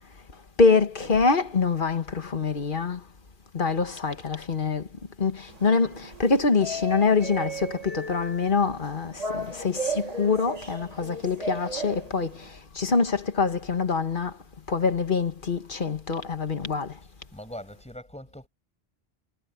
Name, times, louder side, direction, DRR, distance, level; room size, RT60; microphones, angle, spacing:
voice 1, 0.6-3.0 3.5-4.9 5.2-14.4 14.7-17.0, left 4 dB, 55° left, 1.5 m, -25 dB
sound 1, 5.5-12.5, right 1 dB, 40° right, 1.9 m, -36 dB
voice 2, 17.3-18.5, equal, 5° left, 6.1 m, -41 dB
omnidirectional pair, 1.0 m